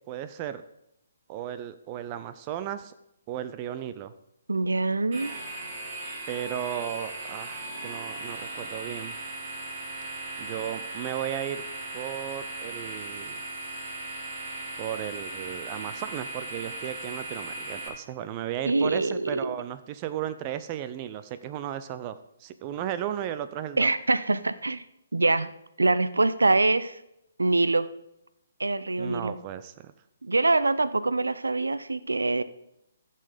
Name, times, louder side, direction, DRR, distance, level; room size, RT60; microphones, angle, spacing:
voice 1, 0.1-0.6 1.3-2.9 3.3-4.1 6.3-9.1 10.4-11.6 11.9-13.4 14.8-23.9 29.0-29.9, right 11 dB, 25° right, 12 dB, 0.6 m, -35 dB
voice 2, 4.5-5.3 18.7-19.5 23.8-24.8 25.1-25.5 25.8-27.0 27.4-27.9 28.6-29.4 30.2-32.4, right 2 dB, 75° right, 15 dB, 0.6 m, -24 dB
sound 1, 5.1-17.9, right 2 dB, 40° right, 3.1 m, -37 dB
14.5 x 6.8 x 5.1 m, 0.83 s
figure-of-eight pair, 135°, 0 cm